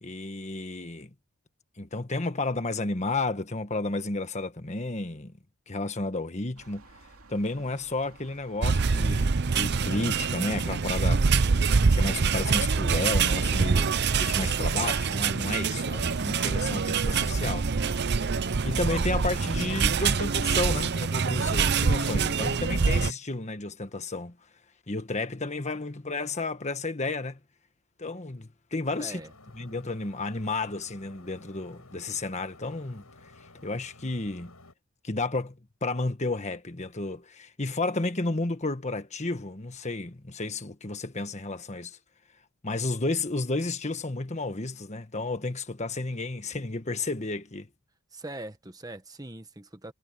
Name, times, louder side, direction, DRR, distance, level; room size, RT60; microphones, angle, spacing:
voice 1, 0.0-1.1 1.8-5.3 5.7-6.8 7.3-11.2 11.9-18.2 18.6-24.3 24.9-27.4 28.0-29.2 29.5-33.1 33.6-34.5 35.0-42.0 42.6-47.7, left 2 dB, 35° left, 1.5 m, -32 dB
sound 1, 6.6-19.8, right 2 dB, 80° right, 2.7 m, -43 dB
sound 2, 8.6-23.1, right 5 dB, 50° right, 0.6 m, -25 dB
sound 3, 28.8-34.7, left 2 dB, 90° left, 7.6 m, -54 dB
voice 2, 29.0-29.3 48.1-49.9, right 2 dB, 15° right, 1.3 m, -41 dB
head